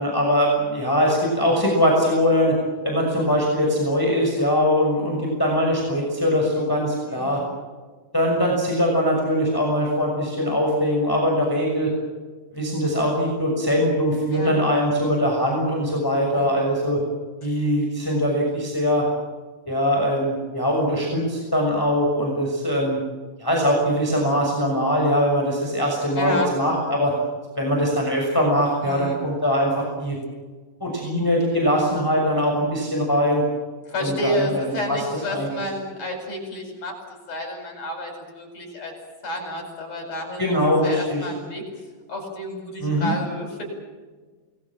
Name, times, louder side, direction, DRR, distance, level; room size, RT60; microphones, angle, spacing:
voice 1, 0.0-2.5 2.8-7.4 8.1-11.9 12.5-17.0 17.4-19.1 19.7-23.0 23.4-27.1 27.6-30.2 30.8-33.4 34.0-35.5 40.4-41.3 42.8-43.1, equal, 5° left, -1 dB, 6.1 m, -22 dB
voice 2, 7.1-7.4 14.3-14.5 16.3-16.6 17.4-17.6 26.2-26.5 28.8-29.2 33.9-37.0 37.3-38.9 39.2-41.7 42.1-43.6, left 1 dB, 45° left, 2 dB, 9.2 m, -30 dB
28.5 x 20.5 x 7.6 m, 1.4 s
omnidirectional pair, 4.0 m